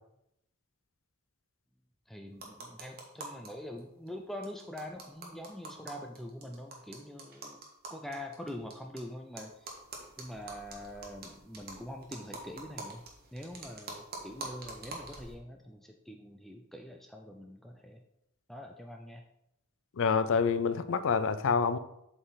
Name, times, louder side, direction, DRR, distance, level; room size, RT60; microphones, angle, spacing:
voice 1, 2.1-7.6 7.9-9.7 10.2-13.0 13.3-18.0 18.5-19.2, left 1 dB, ahead, 3 dB, 0.4 m, -44 dB
sound 1, 2.3-3.5 3.8-4.1 4.4-9.0 9.4-15.4, right 3 dB, 45° right, 1.3 m, -45 dB
voice 2, 20.0-21.8, left 5 dB, 60° left, 13 dB, 0.5 m, -27 dB
7.7 x 4.2 x 4.0 m, 0.82 s
head